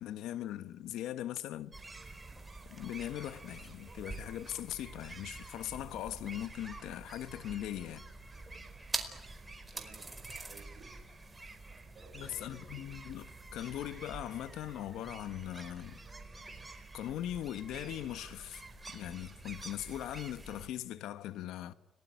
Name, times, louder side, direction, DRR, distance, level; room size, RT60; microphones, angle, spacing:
voice 1, 0.0-1.7 2.7-8.0 12.1-16.0 16.9-18.6 18.9-21.7, left 12 dB, 90° left, 1.2 m, -40 dB
sound 1, 1.7-20.7, right 3 dB, 20° right, 4.6 m, -47 dB
voice 2, 9.7-11.0 11.9-12.8, right 4 dB, 55° right, 5.7 m, -57 dB
30.0 x 19.0 x 9.4 m
cardioid pair, 90°, 0 cm